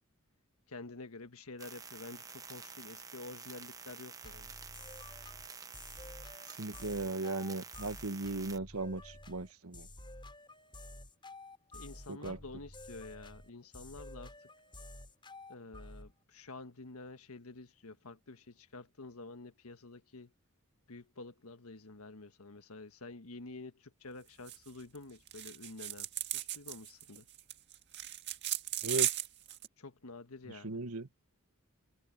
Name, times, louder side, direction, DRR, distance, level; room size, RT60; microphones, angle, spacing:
voice 1, 0.7-4.5 11.7-14.3 15.5-20.3 20.9-26.1 26.3-27.3 29.8-30.8, left 3 dB, 85° left, 1.4 m, -49 dB
sound 1, 1.6-8.6, right 5 dB, 15° right, 1.0 m, -49 dB
sound 2, 4.2-16.1, left 2 dB, 25° left, 6.0 m, -51 dB
voice 2, 6.6-9.9 12.1-12.4 28.8-29.1 30.6-31.1, right 2 dB, 85° right, 1.5 m, -37 dB
sound 3, 24.5-24.7 24.9-25.0 25.3-29.7, right 12 dB, 55° right, 1.8 m, -36 dB
head